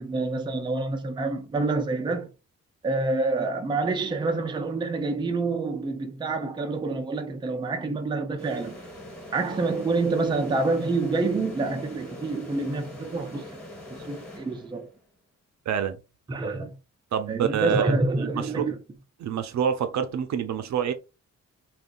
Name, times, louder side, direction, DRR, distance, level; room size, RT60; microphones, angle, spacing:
voice 1, 0.0-2.3 2.8-8.8 9.3-13.5 13.9-14.9 16.3-16.8 17.3-18.8, right 3 dB, 15° right, 0.4 m, -27 dB
sound 1, 8.4-15.0, left 1 dB, 5° left, 1.2 m, -43 dB
voice 2, 15.7-16.0 17.1-18.3 18.6-18.7 19.2-20.9, right 8 dB, 70° right, 0.5 m, -27 dB
3.6 x 2.3 x 2.5 m
wide cardioid pair, 165°, 29 cm